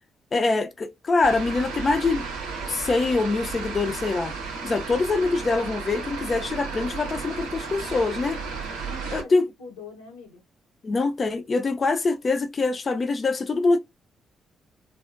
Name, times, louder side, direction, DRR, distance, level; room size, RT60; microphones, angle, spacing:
voice 1, 0.3-2.3 2.7-4.3 4.6-8.4 9.1-9.5 10.8-13.8, left 3 dB, 40° left, 0.5 m, -24 dB
sound 1, 1.2-9.2, right 5 dB, 90° right, 0.7 m, -34 dB
voice 2, 8.4-10.4, left 4 dB, 90° left, 0.9 m, -43 dB
3.4 x 2.1 x 2.5 m
hypercardioid pair, 45°, 0 cm